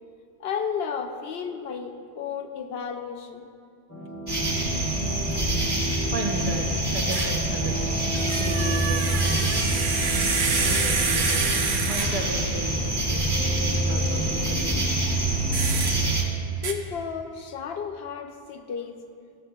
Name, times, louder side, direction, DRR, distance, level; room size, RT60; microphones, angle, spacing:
voice 1, 0.4-3.5 16.6-19.0, left 6 dB, 75° left, 5 dB, 0.8 m, -33 dB
sound 1, 3.9-16.3, equal, 15° left, 0.6 m, -36 dB
sound 2, 4.3-16.2, right 1 dB, 25° right, 1.1 m, -26 dB
voice 2, 6.1-9.8 10.7-11.4 11.9-14.9, right 2 dB, 55° right, 1 dB, 0.9 m, -34 dB
sound 3, 7.1-7.4 8.1-12.4 15.5-16.0 16.6-16.7, right 5 dB, 80° right, 1.0 m, -28 dB
13.5 x 6.5 x 2.3 m, 2.3 s
omnidirectional pair, 1.1 m